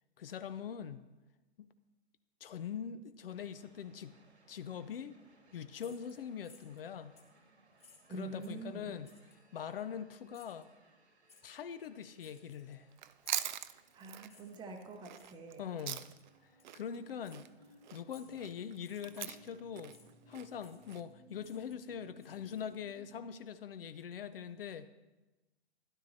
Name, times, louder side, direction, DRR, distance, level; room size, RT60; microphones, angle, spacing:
voice 1, 0.2-1.0 1.6-1.7 2.4-4.2 4.5-5.2 5.5-7.2 8.1-9.1 9.5-10.7 11.4-12.9 15.6-16.1 16.4-17.5 17.9-20.0 20.3-24.9, left 8 dB, 60° left, 13 dB, 0.6 m, -43 dB
sound 1, 3.3-23.2, right 1 dB, 90° right, 1.9 m, -65 dB
sound 2, 5.8-6.8 7.2-7.4 7.8-8.7 9.0-9.4 10.3-10.7 11.3-11.5 12.2-12.9 13.2-13.6 14.3-14.6 15.1-15.3 15.9-16.2 16.6-16.7 17.2-17.4 18.1-18.4 18.8-19.4 19.9-20.1 20.6-21.1 21.4-22.9, left 5 dB, 20° left, 1.4 m, -62 dB
voice 2, 8.1-8.9 13.9-15.7, right 3 dB, 15° right, 4 dB, 0.8 m, -45 dB
Chewing mastication, 12.9-16.4 16.6-21.0, right 11 dB, 45° right, 0.4 m, -42 dB
12.5 x 11.5 x 2.7 m, 1.1 s
hypercardioid pair, 130°, 33 cm